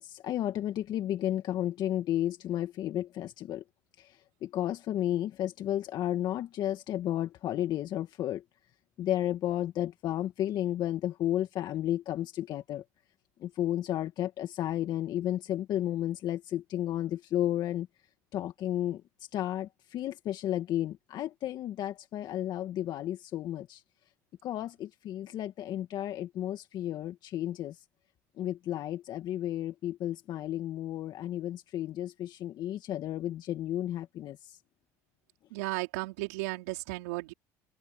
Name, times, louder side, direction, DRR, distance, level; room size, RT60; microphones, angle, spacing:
voice 1, 0.0-3.6 4.0-8.4 9.0-12.8 13.4-17.9 18.3-23.8 24.4-27.8 28.4-34.6, left 12 dB, 60° left, 1.8 m, -33 dB
voice 2, 35.5-37.3, right 22 dB, 85° right, 4.5 m, -34 dB
supercardioid pair, 85°, 8 cm